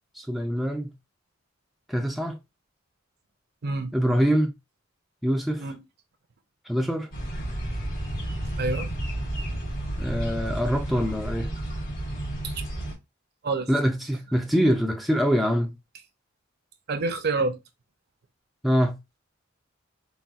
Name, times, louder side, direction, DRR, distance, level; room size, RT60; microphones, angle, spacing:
voice 1, 0.1-0.9 1.9-2.4 3.9-4.5 5.2-5.6 6.7-7.1 10.0-11.5 13.7-15.7 18.6-19.0, equal, ahead, 0.3 m, -24 dB
voice 2, 3.6-3.9 5.6-5.8 8.6-8.9 12.4-12.6 13.4-13.7 16.9-17.6, right 3 dB, 55° right, 0.6 m, -27 dB
sound 1, 7.1-12.9, right 1 dB, 50° left, 1.5 m, -31 dB
3.9 x 2.3 x 2.3 m
head